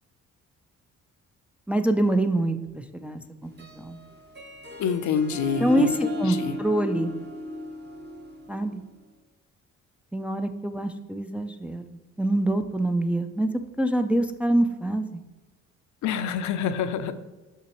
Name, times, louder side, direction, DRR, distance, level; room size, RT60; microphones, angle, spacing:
voice 1, 1.7-4.0 5.6-7.1 8.5-8.8 10.1-11.8 12.2-13.5 13.8-15.1, right 1 dB, 5° right, 6 dB, 0.3 m, -25 dB
Harp, 3.4-9.0, left 1 dB, 35° right, 1.0 m, -35 dB
voice 2, 4.8-6.6 16.0-17.1, left 7 dB, 70° left, 10 dB, 0.5 m, -27 dB
6.1 x 5.6 x 3.0 m, 1.2 s
cardioid pair, 90°, 30 cm